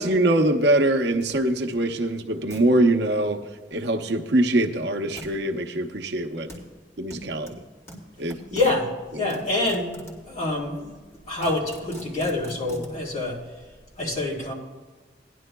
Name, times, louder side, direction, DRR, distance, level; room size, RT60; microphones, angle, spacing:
voice 1, 0.0-3.4 3.7-6.5 7.0-7.5 8.2-8.6, right 1 dB, 70° right, 4 dB, 0.8 m, -23 dB
sound 1, 1.2-1.3 1.7-1.8 2.5-2.6 5.2-5.4 6.5-6.6 7.1-8.8 9.3-10.2 10.9-11.0 11.2-12.9, equal, 15° left, 2.2 m, -41 dB
voice 2, 8.2-8.9 9.2-9.9 10.3-11.0 11.3-13.4 14.0-14.5, left 2 dB, 45° left, -4 dB, 3.1 m, -26 dB
18.5 x 11.0 x 2.2 m, 1.3 s
head